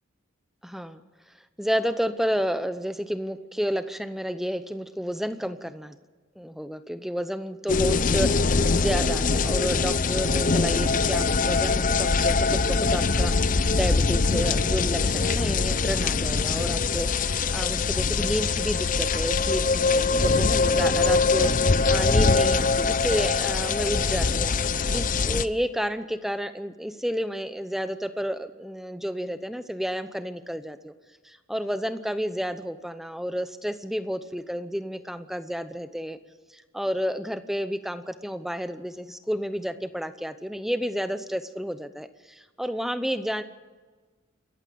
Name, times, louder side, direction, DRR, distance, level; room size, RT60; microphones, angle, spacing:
voice 1, 0.6-1.0 1.6-6.0 6.4-24.5 24.9-30.9 31.2-36.2 36.5-43.4, equal, ahead, 10 dB, 0.8 m, -31 dB
sound 1, 7.7-25.5, left 4 dB, 40° left, 0.6 m, -23 dB
27.5 x 14.5 x 6.9 m, 1.4 s
head